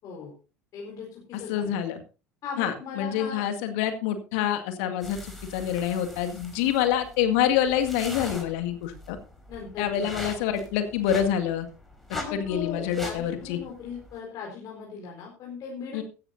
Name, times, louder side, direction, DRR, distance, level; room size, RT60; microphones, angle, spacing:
voice 1, 0.0-0.3 0.7-1.8 2.4-3.5 9.5-10.2 12.1-16.0, left 5 dB, 45° left, -1 dB, 4.5 m, -38 dB
voice 2, 1.5-2.0 2.6-9.2 9.8-11.7 12.3-13.6 15.9-16.0, left 10 dB, 60° left, 7 dB, 2.0 m, -26 dB
sound 1, 5.0-14.2, left 1 dB, 5° left, 4.9 m, -43 dB
16.5 x 13.0 x 2.6 m, 0.33 s
figure-of-eight pair, 70°, 8 cm